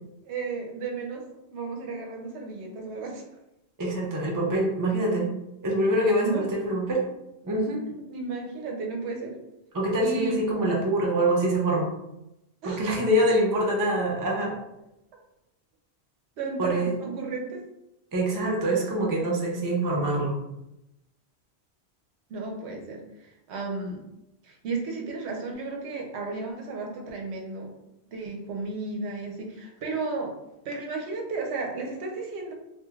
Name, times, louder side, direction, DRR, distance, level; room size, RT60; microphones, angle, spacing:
voice 1, 0.3-1.2 1.5-3.2 6.2-6.5 7.9-9.4 10.0-10.4 12.6-12.9 16.4-17.6 22.3-24.0 24.4-27.7 28.1-30.3 30.6-32.5, right 3 dB, 85° right, 1 dB, 0.9 m, -33 dB
voice 2, 3.8-5.3 5.6-7.0 7.4-7.8 9.7-11.9 12.6-14.6 16.6-16.9 18.1-20.4, right 1 dB, 30° right, -2 dB, 0.4 m, -25 dB
3.1 x 2.5 x 2.3 m, 0.88 s
omnidirectional pair, 1.1 m